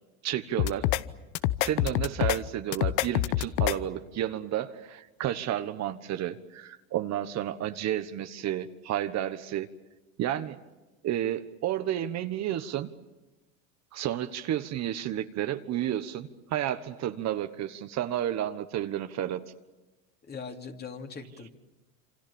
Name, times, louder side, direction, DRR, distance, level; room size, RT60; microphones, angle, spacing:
voice 1, 0.2-0.9 1.6-9.7 10.2-10.6 11.0-12.9 13.9-19.4, right 11 dB, 45° right, 9 dB, 1.3 m, -31 dB
sound 1, 0.6-1.0 1.4-2.4 2.7-3.8, left 15 dB, 60° left, 1.0 m, -26 dB
voice 2, 20.2-21.5, left 5 dB, 25° left, 4 dB, 2.7 m, -40 dB
28.0 x 25.5 x 7.1 m, 1.1 s
supercardioid pair, 110°, 39 cm